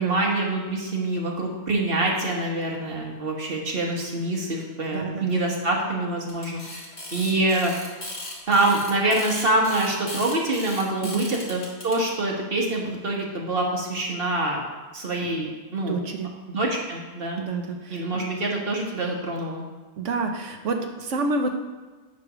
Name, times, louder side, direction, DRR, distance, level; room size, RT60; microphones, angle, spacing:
voice 1, 0.0-6.6 7.1-7.7 8.5-14.6 14.9-16.1 16.5-17.4 17.9-19.6, right 2 dB, 50° right, -1 dB, 1.5 m, -25 dB
voice 2, 4.9-5.4 7.3-7.5 11.0-11.3 15.2-15.3 15.9-16.3 17.4-18.1 20.0-21.5, right 3 dB, 80° right, 4 dB, 1.2 m, -28 dB
sound 1, 6.3-11.9, left 1 dB, 35° left, 2.0 m, -37 dB
9.5 x 3.3 x 6.0 m, 1.3 s
omnidirectional pair, 1.2 m